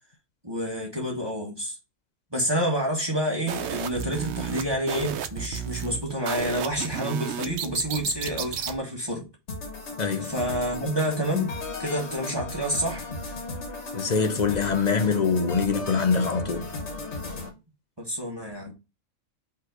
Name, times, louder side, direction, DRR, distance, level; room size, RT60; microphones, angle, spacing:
voice 1, 0.4-1.8 2.3-9.3 10.2-11.5 11.8-13.1 18.0-18.7, equal, 20° right, 1.8 m, -28 dB
sound 1, 3.5-8.8, right 8 dB, 65° right, 1.0 m, -33 dB
sound 2, 9.5-17.5, left 3 dB, 65° left, 1.8 m, -36 dB
voice 2, 10.0-10.3 13.9-16.7, left 5 dB, 40° left, 0.7 m, -24 dB
5.5 x 3.7 x 5.2 m
omnidirectional pair, 1.3 m